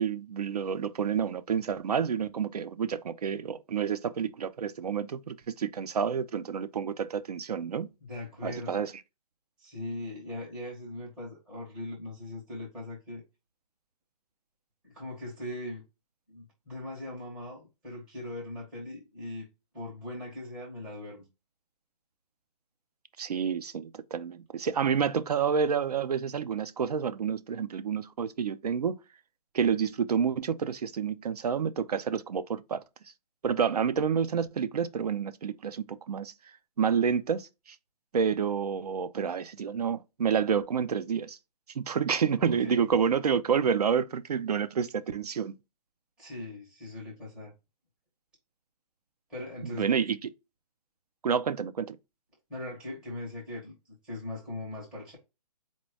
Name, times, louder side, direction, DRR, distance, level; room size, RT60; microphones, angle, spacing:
voice 1, 0.0-7.9 8.4-8.9 23.2-29.0 29.5-32.8 33.4-36.3 36.8-37.8 38.1-41.4 41.7-45.5 49.6-50.3 51.2-52.0, right 7 dB, 75° right, 0.5 m, -29 dB
voice 2, 8.0-8.8 9.6-13.2 14.8-15.8 16.3-19.5 19.7-21.3 42.4-42.8 46.2-47.5 49.3-49.9 52.5-53.7 54.0-55.2, left 2 dB, 5° right, 0.6 m, -40 dB
4.2 x 2.2 x 4.5 m
hypercardioid pair, 175°, 20 cm